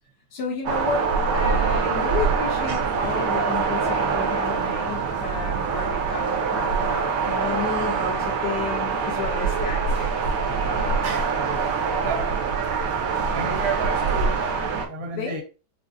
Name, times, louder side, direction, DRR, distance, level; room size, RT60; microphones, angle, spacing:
voice 1, 0.3-1.1 1.3-10.2 15.1-15.4, left 6 dB, 75° left, 1.4 m, -32 dB
sound 1, 0.7-14.9, right 5 dB, 75° right, 1.4 m, -24 dB
voice 2, 11.0-11.5 12.0-12.3 13.0-14.4 14.8-15.4, right 5 dB, 50° right, 0.9 m, -32 dB
5.1 x 2.1 x 2.5 m
omnidirectional pair, 1.9 m